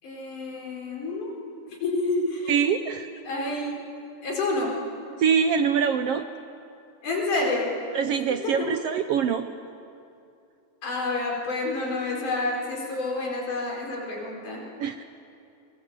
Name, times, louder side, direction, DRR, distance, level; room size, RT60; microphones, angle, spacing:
voice 1, 0.0-1.3 1.7-2.5 3.3-3.8 4.2-4.7 7.0-7.7 8.4-8.7 10.8-14.6, left 2 dB, 80° left, -1 dB, 6.2 m, -28 dB
voice 2, 2.5-3.1 5.2-6.2 7.9-9.5 14.8-15.0, right 7 dB, 70° right, 8 dB, 1.5 m, -24 dB
28.5 x 21.5 x 8.3 m, 2.6 s
omnidirectional pair, 3.5 m